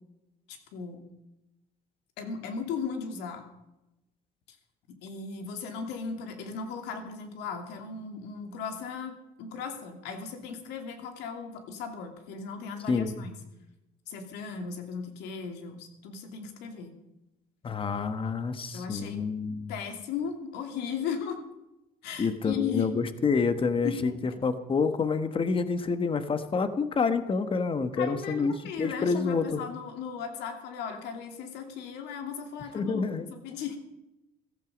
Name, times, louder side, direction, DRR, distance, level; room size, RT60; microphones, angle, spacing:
voice 1, 0.5-1.1 2.2-3.4 5.0-13.4 14.1-16.9 18.7-19.2 19.7-21.4 22.0-22.9 23.8-24.1 28.0-33.1 33.4-33.8, left 6 dB, 90° left, 5 dB, 2.7 m, -36 dB
voice 2, 12.9-13.2 17.6-19.8 22.2-29.6 32.7-33.3, left 4 dB, 30° left, 10 dB, 1.3 m, -28 dB
15.5 x 14.5 x 5.2 m, 0.94 s
cardioid pair, 110°, 17 cm